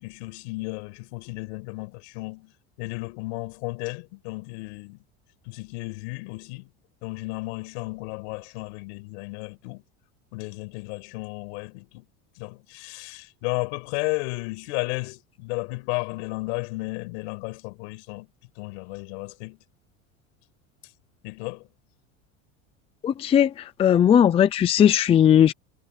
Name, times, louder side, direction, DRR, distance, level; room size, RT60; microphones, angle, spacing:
voice 1, 0.0-2.5 2.8-5.0 5.4-6.7 7.0-9.8 10.3-12.0 12.4-18.3 18.6-19.6 21.2-21.7, left 27 dB, 75° left, 5.9 m, -33 dB
voice 2, 23.0-23.5 23.8-25.5, left 9 dB, 15° left, 0.5 m, -17 dB
cardioid pair, 160°, 34 cm